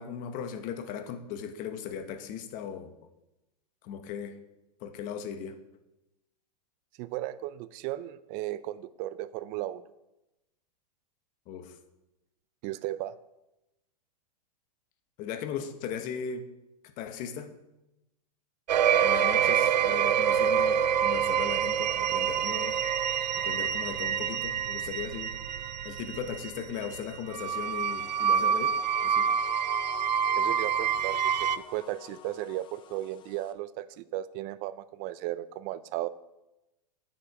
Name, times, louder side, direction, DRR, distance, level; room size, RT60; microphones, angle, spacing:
voice 1, 0.0-2.9 3.8-4.4 4.8-5.5 11.5-11.8 15.2-16.5 16.8-17.5 19.0-22.8 23.3-25.4 25.8-29.3, left 7 dB, 40° left, 1.1 m, -38 dB
voice 2, 7.0-9.8 12.6-13.2 30.4-36.1, right 14 dB, 40° right, 0.5 m, -35 dB
sound 1, 18.7-31.6, right 8 dB, 90° right, 0.5 m, -27 dB
sound 2, 27.4-33.5, left 8 dB, 25° left, 0.7 m, -48 dB
8.9 x 7.2 x 4.7 m
hypercardioid pair, 130°, 21 cm